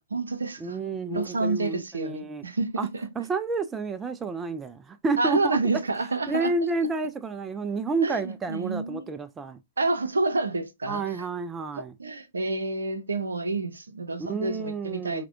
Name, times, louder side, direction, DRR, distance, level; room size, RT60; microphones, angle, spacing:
voice 1, 0.0-3.1 5.2-6.5 8.0-9.1 9.8-11.2 11.8-15.3, right 3 dB, 80° right, 0.6 m, -29 dB
voice 2, 0.6-2.4 2.8-2.9 3.2-5.6 6.3-9.6 10.9-11.9 14.2-15.3, right 3 dB, 15° right, 0.3 m, -30 dB
5.7 x 2.2 x 2.5 m
figure-of-eight pair, 115°, 0 cm